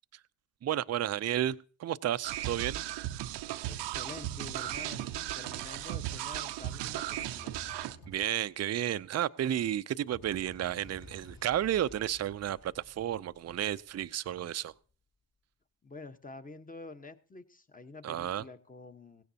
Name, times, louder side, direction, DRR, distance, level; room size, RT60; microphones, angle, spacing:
voice 1, 0.6-2.8 3.2-3.3 6.8-6.9 8.1-14.7 18.0-18.4, right 11 dB, 40° right, 0.5 m, -32 dB
sound 1, 2.2-8.0, right 14 dB, 75° right, 0.7 m, -36 dB
sound 2, 3.6-5.3 7.2-8.6 10.1-11.7, right 1 dB, 70° left, 4.8 m, -53 dB
voice 2, 3.6-7.6 15.8-19.2, left 3 dB, 20° left, 1.2 m, -48 dB
Explosion, 10.7-15.0, left 3 dB, 35° left, 4.0 m, -57 dB
16.5 x 16.5 x 2.8 m
supercardioid pair, 55°, 42 cm